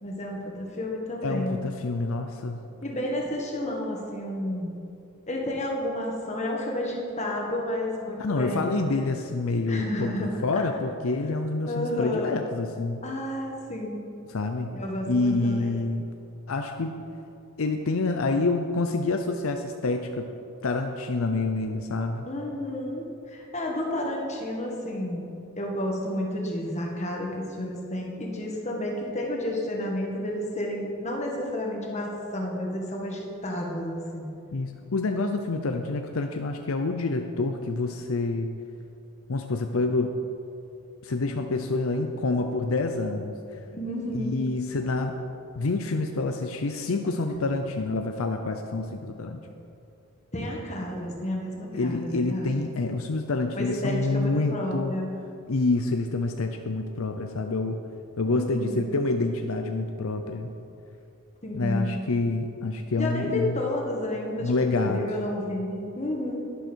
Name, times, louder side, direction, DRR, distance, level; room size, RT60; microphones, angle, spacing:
voice 1, 0.0-1.6 2.8-4.8 5.3-8.8 9.7-10.4 11.7-12.4 13.0-14.0 14.7-15.7 22.3-34.3 43.6-44.4 50.3-52.6 53.5-55.1 58.3-59.0 61.4-62.0 62.9-66.4, left 1 dB, 30° left, -1 dB, 1.7 m, -31 dB
voice 2, 1.2-2.6 8.2-13.0 14.3-14.7 15.1-16.1 16.5-17.0 17.6-20.3 20.6-22.3 34.5-38.5 39.3-40.1 41.0-43.3 44.1-45.1 45.6-49.4 51.7-54.9 55.5-57.8 58.2-60.5 61.5-63.6 64.4-65.1, left 3 dB, 75° left, 5 dB, 0.6 m, -27 dB
11.5 x 10.5 x 4.5 m, 2.7 s
head